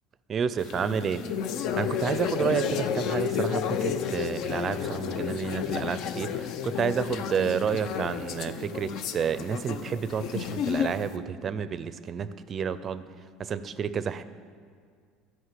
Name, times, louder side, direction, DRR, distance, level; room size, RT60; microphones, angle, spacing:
voice 1, 0.3-1.2 1.8-13.0 13.4-14.2, right 7 dB, 35° right, 14 dB, 0.4 m, -30 dB
sound 1, 0.6-11.1, left 8 dB, 60° left, 0.5 m, -31 dB
12.0 x 5.6 x 7.5 m, 2.1 s
cardioid pair, 125°, 0 cm